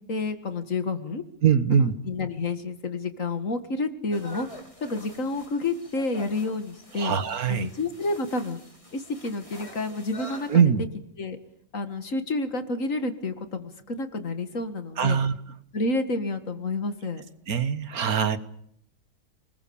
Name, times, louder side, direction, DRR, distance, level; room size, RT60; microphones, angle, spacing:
voice 1, 0.1-1.2 1.7-4.5 4.8-7.1 7.5-8.6 8.9-10.7 11.2-11.4 11.7-15.2 15.7-17.2, left 3 dB, 55° left, 9 dB, 2.2 m, -29 dB
voice 2, 1.4-1.9 7.0-7.7 10.5-10.8 15.0-15.3 17.5-18.4, right 7 dB, 70° right, 12 dB, 1.7 m, -22 dB
sound 1, 4.1-10.6, equal, 20° left, 3.3 m, -45 dB
28.0 x 21.0 x 7.1 m, 0.69 s
omnidirectional pair, 1.7 m